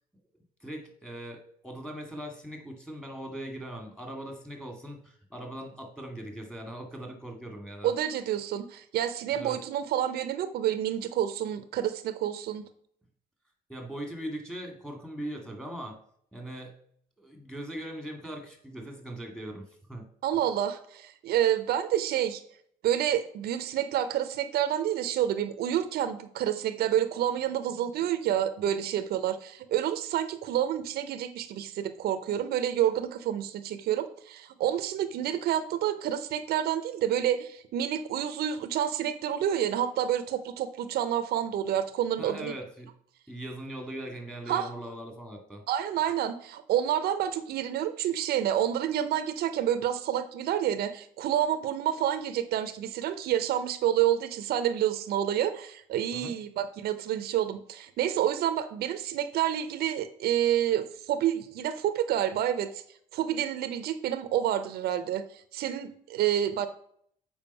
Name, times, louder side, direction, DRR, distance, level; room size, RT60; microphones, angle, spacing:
voice 1, 0.6-7.9 9.3-9.6 13.7-16.0 16.3-16.8 17.2-20.1 42.2-42.9 43.3-45.6 56.1-56.3, right 1 dB, 5° left, 3 dB, 2.1 m, -40 dB
voice 2, 7.8-12.6 20.2-22.4 22.8-42.5 44.5-44.7 45.7-62.7 63.1-66.7, right 10 dB, 70° right, 10 dB, 0.7 m, -28 dB
7.2 x 5.0 x 5.5 m, 0.64 s
cardioid pair, 110°, 17 cm